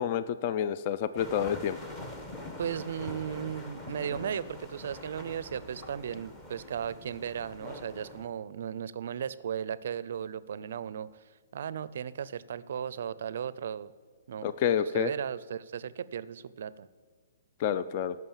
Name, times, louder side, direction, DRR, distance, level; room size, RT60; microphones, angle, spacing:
voice 1, 0.0-1.8 14.4-15.1 17.6-18.2, left 9 dB, 30° left, 13 dB, 0.3 m, -28 dB
sound 1, 1.1-8.3, left 1 dB, 15° left, 0.9 m, -44 dB
voice 2, 2.6-11.2 11.5-13.9 14.3-14.5 14.9-16.9, right 8 dB, 55° right, 18 dB, 0.4 m, -36 dB
14.5 x 6.1 x 7.2 m, 1.5 s
hypercardioid pair, 170°, 0 cm